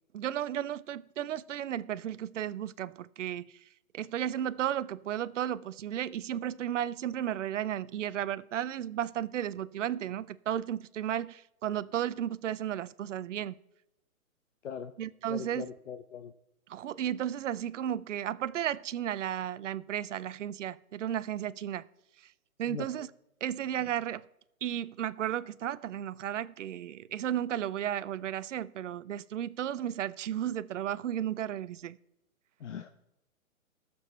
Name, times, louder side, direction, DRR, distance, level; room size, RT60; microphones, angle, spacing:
voice 1, 0.1-3.5 3.9-13.6 15.0-15.7 16.7-21.9 22.6-23.1 23.4-24.2 24.6-32.0, right 10 dB, 60° right, 0.5 m, -34 dB
voice 2, 15.3-16.3 22.7-22.9 32.6-32.9, left 7 dB, 55° left, 0.6 m, -40 dB
19.5 x 6.9 x 3.3 m
hypercardioid pair, 160°, 43 cm